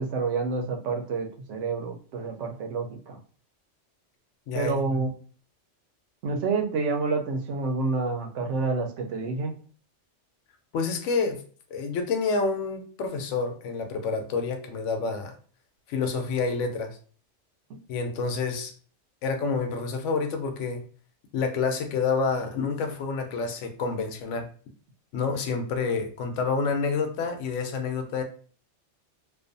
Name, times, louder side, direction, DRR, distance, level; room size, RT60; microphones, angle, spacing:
voice 1, 0.0-3.2 4.5-5.1 6.2-9.5 17.7-17.8, right 4 dB, 85° right, 4 dB, 0.9 m, -28 dB
voice 2, 4.5-5.0 10.7-11.4 11.7-15.3 15.9-17.0 17.9-18.7 19.2-20.8 21.3-24.5 25.1-28.2, left 4 dB, 90° left, 6 dB, 0.9 m, -28 dB
2.4 x 2.3 x 2.5 m, 0.42 s
omnidirectional pair, 1.2 m